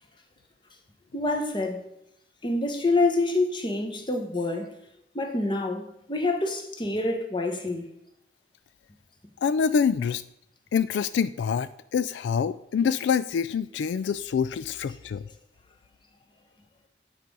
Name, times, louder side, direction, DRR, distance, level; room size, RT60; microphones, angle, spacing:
voice 1, 1.1-1.8 2.4-4.7 5.1-7.9, left 2 dB, 25° left, 1.1 m, -27 dB
voice 2, 9.4-10.2 10.7-15.2, left 6 dB, 80° left, 0.3 m, -26 dB
9.2 x 4.8 x 5.4 m
head